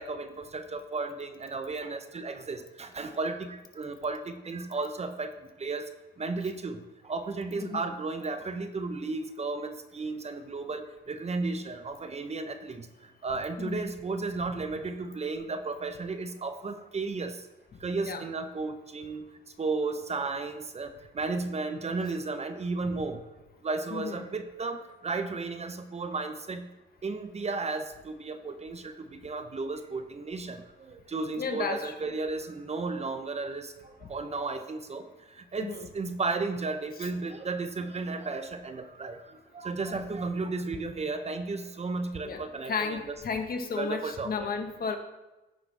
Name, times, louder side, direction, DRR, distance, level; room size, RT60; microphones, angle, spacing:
voice 1, 0.0-5.3 5.6-5.9 6.2-12.9 13.2-17.4 17.8-19.3 19.6-23.2 23.6-26.7 27.0-30.6 30.9-35.0 35.5-43.1 43.8-44.5, right 3 dB, 35° right, 9 dB, 0.8 m, -34 dB
voice 2, 13.6-13.9 18.0-18.2 23.9-24.3 31.4-31.9 35.6-35.9 39.9-40.0 42.2-45.0, left 5 dB, 50° left, 6 dB, 1.3 m, -33 dB
15.5 x 5.9 x 3.4 m, 1.1 s
cardioid pair, 90°, 20 cm